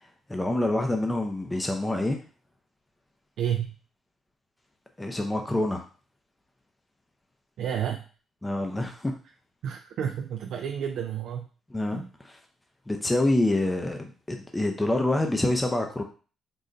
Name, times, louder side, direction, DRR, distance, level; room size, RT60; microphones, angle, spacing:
voice 1, 0.3-2.2 5.0-5.8 8.4-9.1 11.7-12.4 12.9-16.0, left 1 dB, 15° left, 4 dB, 0.5 m, -26 dB
voice 2, 3.4-3.8 7.6-8.0 9.6-11.5 11.9-12.1, right 9 dB, 75° right, 3 dB, 0.3 m, -30 dB
3.8 x 2.1 x 3.8 m, 0.36 s
cardioid pair, 90°, 0 cm